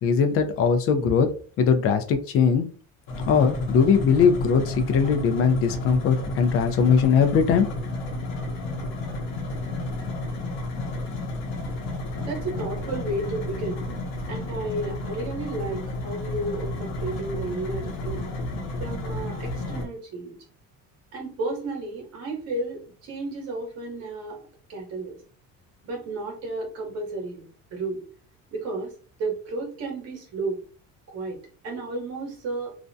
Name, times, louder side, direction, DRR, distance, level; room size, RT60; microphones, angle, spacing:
voice 1, 0.0-1.3 1.6-2.7 3.3-7.7, left 6 dB, 45° left, 8 dB, 0.4 m, -20 dB
sound 1, 3.1-19.9, left 2 dB, 80° left, 0.8 m, -31 dB
voice 2, 12.2-14.0 14.3-18.3 18.8-20.4 21.1-24.4 24.7-25.2 25.8-28.0 28.5-28.9 29.2-30.6 31.1-32.8, right 2 dB, 50° right, 0 dB, 0.9 m, -32 dB
2.4 x 2.1 x 2.5 m, 0.40 s
cardioid pair, 155°, 32 cm